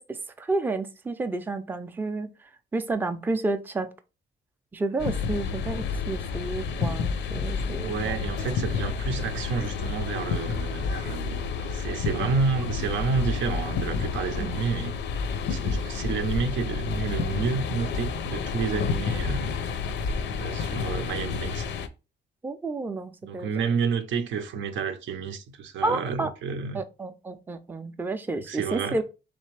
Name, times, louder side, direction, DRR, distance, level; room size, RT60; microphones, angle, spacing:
voice 1, 0.0-2.3 2.7-3.9 4.7-8.3 14.4-14.5 22.4-23.5 25.8-26.3 26.7-29.0, right 3 dB, 10° right, 0.3 m, -30 dB
sound 1, 5.0-21.9, left 5 dB, 75° left, 0.5 m, -30 dB
voice 2, 7.8-14.9 15.5-19.6 20.4-21.7 23.2-26.8 28.5-29.0, right 5 dB, 90° right, 0.6 m, -30 dB
3.5 x 3.3 x 3.2 m
cardioid pair, 130°, 19 cm